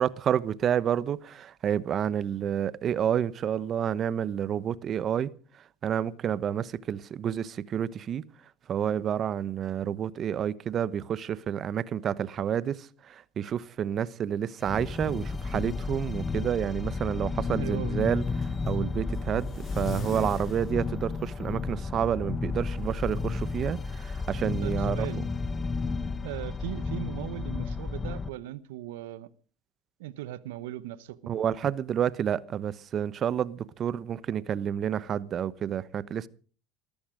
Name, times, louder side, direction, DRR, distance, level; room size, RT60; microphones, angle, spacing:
voice 1, 0.0-5.3 5.8-8.2 8.7-25.1 31.3-36.3, right 9 dB, 45° right, 1.0 m, -29 dB
sound 1, 14.6-28.3, left 4 dB, 20° left, 1.2 m, -32 dB
sound 2, 17.0-21.8, left 5 dB, 40° left, 4.1 m, -46 dB
voice 2, 17.6-18.0 24.6-25.3 26.2-29.3 30.0-31.4, right 15 dB, 80° right, 1.0 m, -38 dB
19.5 x 14.0 x 5.1 m
hypercardioid pair, 85°, 0 cm